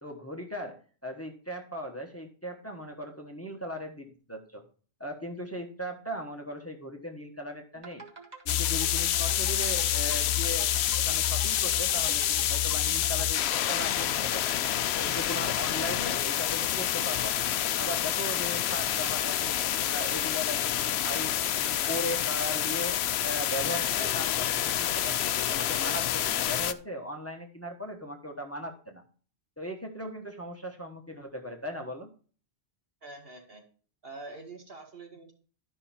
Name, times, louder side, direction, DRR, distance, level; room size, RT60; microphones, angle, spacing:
voice 1, 0.0-4.6 5.0-8.0 8.4-10.7 11.0-14.4 15.0-17.5 17.8-19.6 19.9-29.0 29.6-32.1, equal, 15° left, 3 dB, 1.2 m, -38 dB
sound 1, 7.7-15.6, right 3 dB, 40° right, 1.8 m, -47 dB
sound 2, 8.5-26.7, left 11 dB, 75° left, 0.8 m, -28 dB
voice 2, 33.0-33.6 34.0-35.3, right 3 dB, 60° right, 1 dB, 2.4 m, -45 dB
12.0 x 5.7 x 4.3 m, 0.41 s
omnidirectional pair, 1.1 m